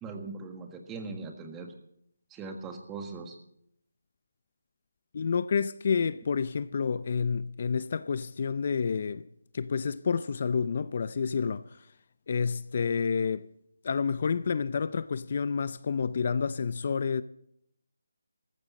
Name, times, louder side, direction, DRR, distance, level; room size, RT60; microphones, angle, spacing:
voice 1, 0.0-1.7 2.3-3.4, right 4 dB, 10° right, 1.6 m, -40 dB
voice 2, 5.1-9.2 9.5-11.9 12.3-13.5 13.8-17.2, left 5 dB, 45° left, 0.5 m, -29 dB
18.5 x 14.5 x 4.2 m
figure-of-eight pair, 160°, 0 cm